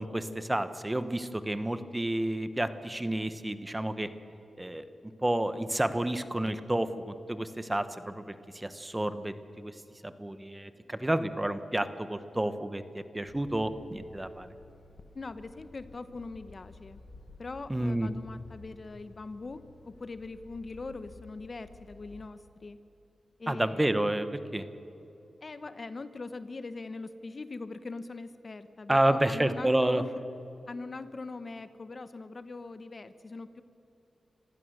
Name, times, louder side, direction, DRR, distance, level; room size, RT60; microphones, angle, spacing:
voice 1, 0.0-4.1 4.6-4.8 5.2-9.7 10.0-14.5 17.7-18.1 23.5-24.6 28.9-30.0, right 1 dB, 15° right, 11 dB, 1.2 m, -30 dB
sound 1, 13.3-22.3, left 3 dB, 75° left, 1.5 m, -54 dB
voice 2, 15.1-17.0 17.4-22.8 23.4-23.9 25.4-30.2 30.7-33.6, left 3 dB, 50° left, 12 dB, 1.0 m, -41 dB
26.5 x 15.5 x 6.6 m, 3.0 s
cardioid pair, 55°, 0 cm